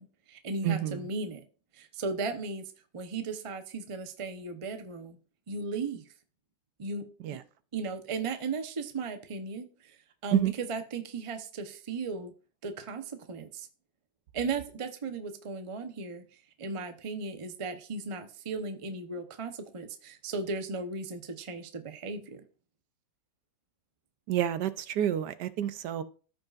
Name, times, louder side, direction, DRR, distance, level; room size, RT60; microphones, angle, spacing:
voice 1, 0.0-1.4 1.7-5.2 5.5-6.0 6.8-7.4 7.7-12.3 12.6-13.7 14.3-16.3 16.6-22.4, right 4 dB, 50° right, 0.4 m, -36 dB
voice 2, 0.6-1.0 7.2-7.4 10.3-10.5 24.3-26.0, right 11 dB, 70° right, 1.1 m, -28 dB
14.0 x 5.3 x 2.4 m
omnidirectional pair, 2.0 m